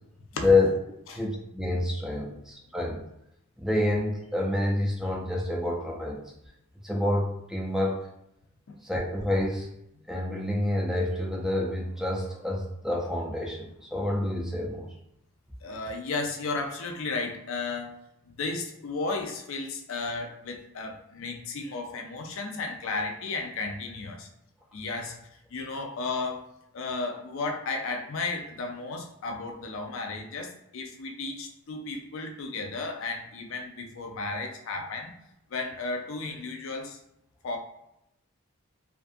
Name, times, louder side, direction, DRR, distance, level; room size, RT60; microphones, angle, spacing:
voice 1, 1.1-3.0 3.6-6.2 6.8-8.1 8.8-9.8 10.1-14.9, left 2 dB, ahead, -3 dB, 0.4 m, -28 dB
voice 2, 15.6-18.0 18.2-24.3 24.7-35.1 35.5-37.0 37.4-37.6, left 3 dB, 60° left, 4 dB, 0.4 m, -34 dB
2.5 x 2.3 x 2.5 m, 0.82 s
head